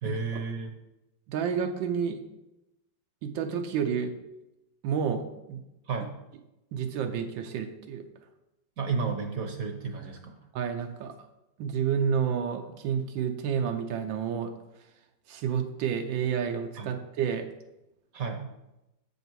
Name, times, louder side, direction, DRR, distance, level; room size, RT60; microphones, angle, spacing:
voice 1, 0.0-0.7 5.9-6.1 8.8-10.4 16.8-17.0 18.1-18.5, right 4 dB, 60° right, 4 dB, 1.0 m, -32 dB
voice 2, 1.3-2.2 3.2-4.1 4.8-5.6 6.7-8.0 10.5-11.1 11.6-14.5 15.3-17.5, right 7 dB, 85° right, 5 dB, 1.4 m, -30 dB
7.7 x 5.4 x 4.5 m, 0.92 s
omnidirectional pair, 2.0 m